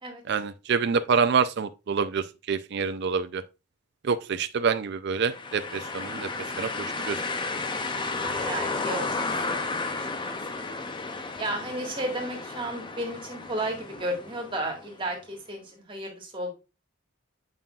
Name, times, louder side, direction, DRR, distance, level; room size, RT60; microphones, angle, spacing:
voice 1, 0.3-3.4 4.0-6.3 6.6-7.2, right 5 dB, 55° right, 0.4 m, -27 dB
sound 1, 5.2-15.0, left 3 dB, 25° left, 0.5 m, -33 dB
voice 2, 8.1-9.3 10.0-10.7 11.4-16.5, right 1 dB, 25° right, 1.7 m, -33 dB
7.3 x 5.5 x 2.4 m
head